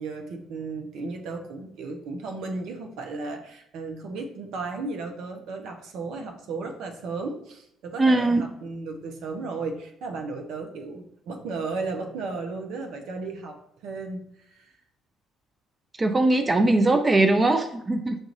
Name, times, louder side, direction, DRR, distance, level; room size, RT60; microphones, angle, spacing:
voice 1, 0.0-13.6 13.8-14.2 14.5-14.7, right 3 dB, 70° right, 3 dB, 0.8 m, -34 dB
voice 2, 8.0-8.4 16.0-18.2, right 2 dB, 30° right, 7 dB, 0.5 m, -20 dB
6.4 x 2.5 x 3.1 m, 0.76 s
hypercardioid pair, 55°, 0 cm